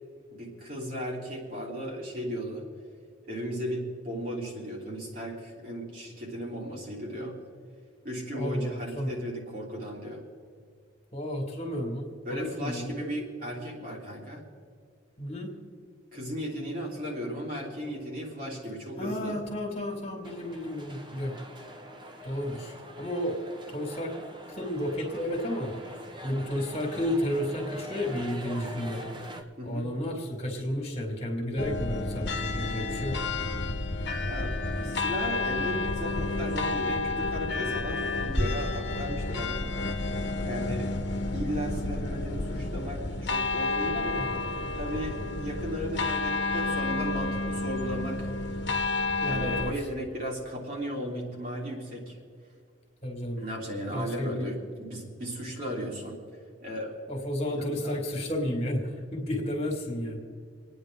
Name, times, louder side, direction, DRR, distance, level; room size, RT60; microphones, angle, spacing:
voice 1, 0.3-2.6 3.3-7.4 8.0-10.2 12.2-14.4 16.1-19.4 29.6-29.9 34.2-39.7 40.4-40.9 41.3-44.3 44.7-48.3 49.2-52.2 53.4-56.2 56.6-57.0 57.4-57.9, equal, 45° right, -3 dB, 3.3 m, -35 dB
voice 2, 8.3-9.2 11.1-13.1 15.2-15.5 19.0-21.3 22.2-23.4 23.7-24.1 24.5-25.7 26.2-29.1 29.6-33.2 44.2-44.3 49.2-49.7 53.0-53.4 53.9-54.5 57.1-60.2, left 1 dB, 35° left, 1 dB, 2.3 m, -32 dB
sound 1, 20.2-29.4, right 1 dB, 25° right, 0.9 m, -44 dB
sound 2, 31.6-49.7, left 3 dB, 60° left, 1.2 m, -31 dB
27.0 x 9.6 x 3.8 m, 2.2 s
head